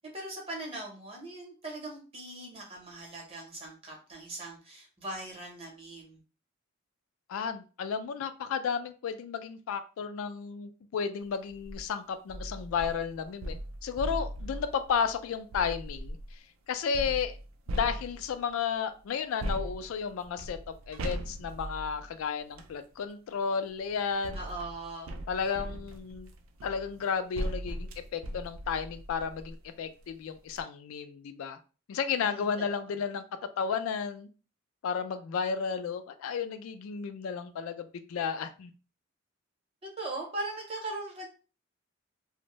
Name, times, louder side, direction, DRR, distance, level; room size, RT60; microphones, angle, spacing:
voice 1, 0.1-6.2 24.3-25.2 32.2-32.5 40.0-41.3, right 2 dB, 25° right, -1 dB, 0.8 m, -40 dB
voice 2, 7.3-13.6 13.8-16.4 16.7-17.4 17.7-20.6 20.9-24.4 25.3-26.3 26.6-31.6 31.9-33.2 33.6-34.3 34.8-38.7, left 6 dB, 80° left, 10 dB, 0.3 m, -33 dB
sound 1, 11.5-11.8 12.3-16.3 16.9-18.5 19.4-22.8 23.7-29.6 30.1-30.2 30.5-30.6, equal, 75° right, 0.4 m, -39 dB
2.5 x 2.1 x 2.9 m, 0.35 s
head